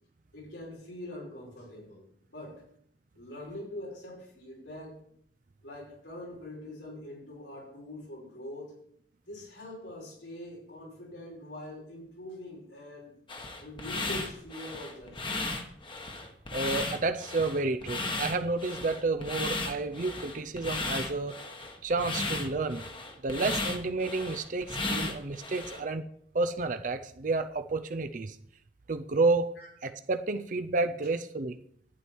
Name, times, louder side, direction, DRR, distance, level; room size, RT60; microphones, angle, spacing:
voice 1, 0.3-2.6 3.1-5.0 5.6-8.8 9.2-13.1 13.6-15.4 29.6-29.7, left 1 dB, 85° left, -3 dB, 5.6 m, -44 dB
sound 1, 13.3-25.8, left 2 dB, 25° left, 1.3 m, -35 dB
voice 2, 16.5-21.4 21.8-22.8 23.2-26.1 26.3-28.4 28.9-29.5 29.8-31.6, right 3 dB, 45° right, 8 dB, 0.6 m, -30 dB
11.5 x 9.6 x 4.6 m, 0.67 s
head